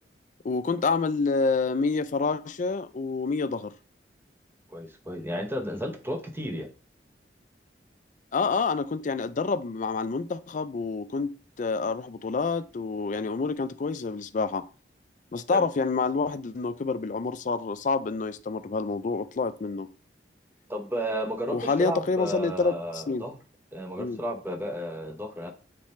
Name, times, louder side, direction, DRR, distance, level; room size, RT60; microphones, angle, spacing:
voice 1, 0.4-3.7 8.3-14.7 15.3-19.9 21.5-23.2 24.0-24.2, left 4 dB, 45° left, 0.4 m, -28 dB
voice 2, 4.7-6.7 15.5-15.7 20.7-23.4 23.7-25.5, equal, 15° right, 0.8 m, -33 dB
7.3 x 4.2 x 3.2 m
head